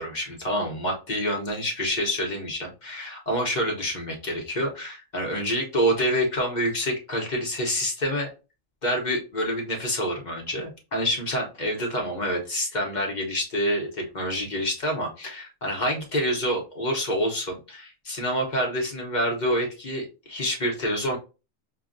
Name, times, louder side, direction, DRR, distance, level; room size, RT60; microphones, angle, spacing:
voice 1, 0.0-8.3 8.8-21.2, equal, 40° left, 0 dB, 0.9 m, -27 dB
5.7 x 2.2 x 2.5 m, 0.31 s
omnidirectional pair, 1.4 m